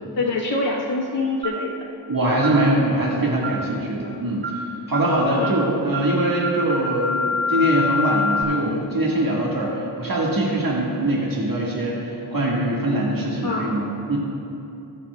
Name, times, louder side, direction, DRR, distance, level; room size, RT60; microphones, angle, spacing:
voice 1, 0.2-1.7 5.3-5.5 13.4-13.8, left 3 dB, 85° left, -6 dB, 1.1 m, -25 dB
sound 1, 1.4-1.7 2.4-2.6 3.4-3.7 4.4-4.6 4.9-5.1 5.4-5.6 5.9-8.4, left 3 dB, 25° right, 0.9 m, -26 dB
voice 2, 2.1-14.2, right 1 dB, 55° right, -4 dB, 1.6 m, -22 dB
21.5 x 7.1 x 2.3 m, 2.8 s
wide cardioid pair, 75°, 42 cm